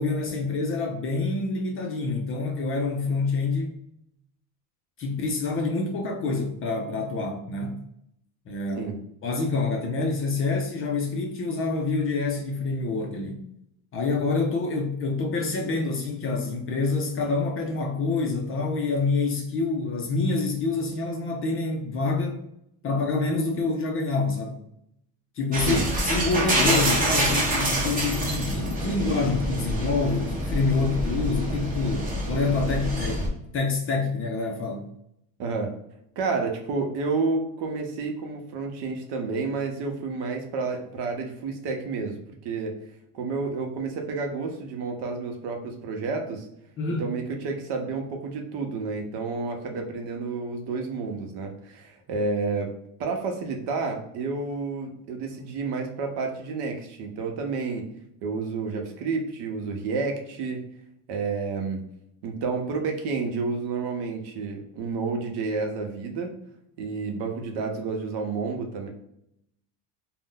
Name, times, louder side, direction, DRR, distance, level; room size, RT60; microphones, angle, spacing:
voice 1, 0.0-3.8 5.0-7.8 8.5-8.9 9.2-13.5 13.9-22.4 22.8-24.6 25.4-34.9 46.8-47.1, left 3 dB, 30° left, 0.4 m, -27 dB
sound 1, 25.5-33.3, right 1 dB, 20° right, 0.7 m, -26 dB
voice 2, 35.4-35.7 36.2-42.8 43.1-46.5 47.0-52.7 53.0-57.9 58.2-60.6 61.1-61.8 62.2-66.3 66.8-68.9, right 4 dB, 65° right, 0.8 m, -30 dB
2.6 x 2.1 x 3.6 m
cardioid pair, 150°, 43 cm